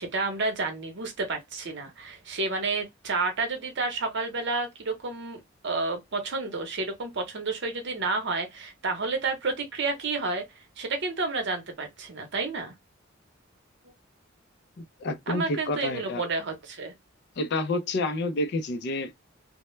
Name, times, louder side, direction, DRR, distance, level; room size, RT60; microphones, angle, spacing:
voice 1, 0.0-10.4 10.8-12.7 15.3-16.9, right 3 dB, 60° right, 0.8 m, -30 dB
voice 2, 14.8-16.2 17.4-19.1, left 2 dB, 55° left, 0.4 m, -29 dB
2.1 x 2.1 x 3.1 m
head